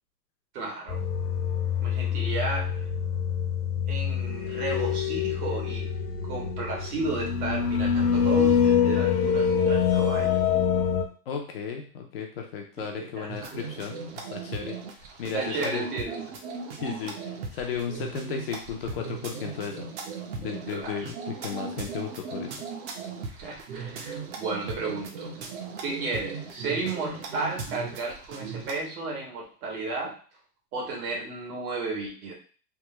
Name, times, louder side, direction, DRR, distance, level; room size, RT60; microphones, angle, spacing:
voice 1, 0.5-1.0 1.8-2.8 3.9-5.9 6.2-10.4 13.0-13.5 15.3-16.2 20.7-21.0 23.4-25.3 25.8-30.2 30.7-32.3, right 3 dB, 65° right, -1 dB, 1.5 m, -33 dB
sound 1, 0.9-11.0, left 7 dB, 70° left, 0.8 m, -25 dB
voice 2, 11.3-14.7 15.2-15.9 16.8-19.9 20.4-22.5, left 7 dB, 40° left, 2 dB, 0.4 m, -34 dB
sound 2, 13.3-28.8, right 5 dB, 45° right, 0.7 m, -38 dB
3.4 x 2.1 x 2.9 m, 0.39 s
hypercardioid pair, 140°, 49 cm